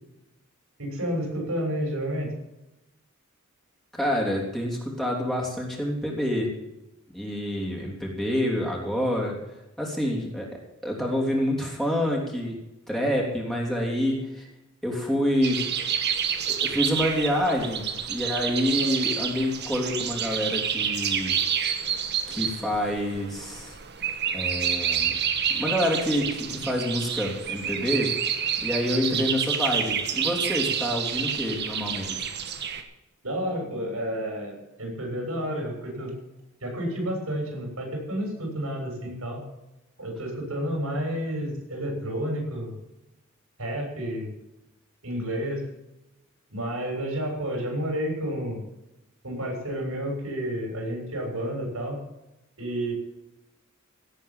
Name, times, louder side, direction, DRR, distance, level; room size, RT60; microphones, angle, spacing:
voice 1, 0.8-2.3 29.1-29.2 33.2-36.1 36.6-39.4 40.0-42.8 43.6-44.3 45.0-45.6 46.5-48.6 49.2-52.0 52.6-52.9, equal, 80° right, 1 dB, 6.8 m, -30 dB
voice 2, 3.9-6.5 7.1-9.4 9.8-10.5 10.8-12.5 12.9-14.5 14.8-15.7 16.5-21.3 22.3-23.7 24.3-25.1 25.5-28.1 28.6-32.3, equal, ahead, -2 dB, 3.3 m, -27 dB
sound 1, 15.4-32.8, right 8 dB, 50° right, 1.4 m, -29 dB
17.0 x 8.4 x 7.4 m, 0.93 s
head